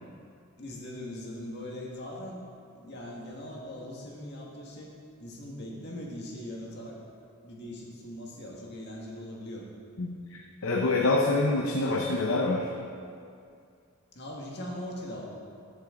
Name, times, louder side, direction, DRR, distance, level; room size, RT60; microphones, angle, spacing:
voice 1, 0.6-2.4 2.7-4.9 5.2-7.0 7.4-9.6 14.1-15.3, left 1 dB, 50° left, -2 dB, 1.8 m, -40 dB
voice 2, 10.0-12.7, left 2 dB, 70° left, 0 dB, 0.8 m, -26 dB
15.0 x 6.6 x 3.8 m, 2.4 s
head